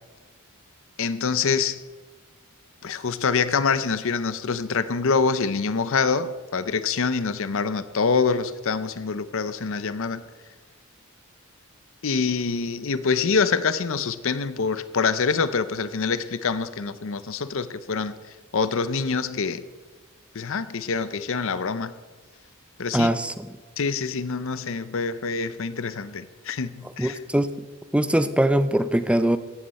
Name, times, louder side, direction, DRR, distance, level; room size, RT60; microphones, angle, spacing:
voice 1, 1.0-1.8 2.8-10.2 12.0-18.2 18.5-19.6 20.3-21.9 22.8-23.1 23.8-27.2, left 5 dB, 60° left, 14 dB, 0.6 m, -25 dB
voice 2, 22.9-23.5 27.0-27.5 27.9-29.4, right 1 dB, 5° right, 12 dB, 0.5 m, -22 dB
16.0 x 12.0 x 4.2 m, 1.3 s
head